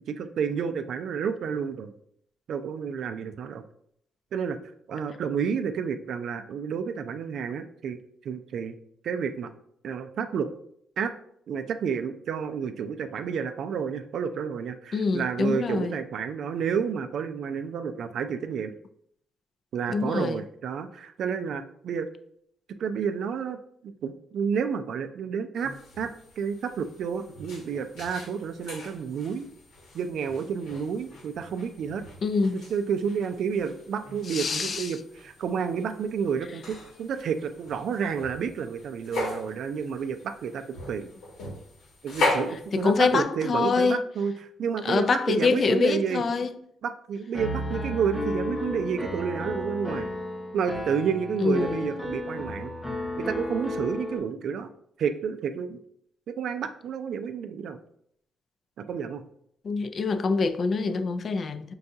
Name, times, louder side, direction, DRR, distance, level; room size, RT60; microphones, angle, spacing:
voice 1, 0.1-1.9 2.5-3.6 4.3-4.6 4.9-8.7 9.0-9.5 9.8-10.5 11.0-11.1 11.5-18.7 19.7-22.1 22.7-26.1 26.4-29.5 29.9-32.1 32.5-41.1 42.0-46.2 46.8-50.1 50.5-52.7 53.2-54.7 55.0-55.8 56.3-57.8 58.8-59.2, right 6 dB, 65° right, 0.3 m, -30 dB
voice 2, 14.9-16.0 19.9-20.4 32.2-32.6 34.3-34.9 42.7-44.0 44.8-46.5 51.4-51.9 59.6-61.7, left 4 dB, 45° left, 0.3 m, -25 dB
sound 1, 25.6-43.2, left 2 dB, 85° left, 1.0 m, -38 dB
Piano, 47.3-54.2, left 1 dB, 15° left, 0.7 m, -33 dB
5.3 x 2.3 x 2.7 m
cardioid pair, 90°, 0 cm